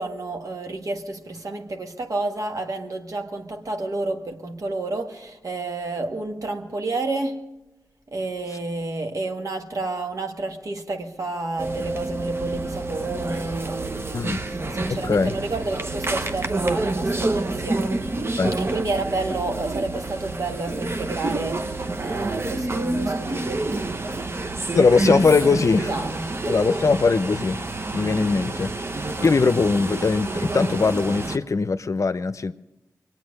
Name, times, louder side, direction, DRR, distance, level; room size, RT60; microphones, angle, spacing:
voice 1, 0.0-7.5 8.1-14.4 14.7-17.9 18.6-24.4 25.4-26.4, right 2 dB, 60° right, 1.7 m, -30 dB
sound 1, 11.6-31.4, right 2 dB, 40° right, 0.9 m, -28 dB
voice 2, 14.9-15.3 18.4-18.5 24.7-25.9 26.5-27.6 27.9-28.7 29.2-32.5, left 4 dB, 55° left, 0.6 m, -20 dB
22.5 x 8.9 x 6.5 m
cardioid pair, 45°, 6 cm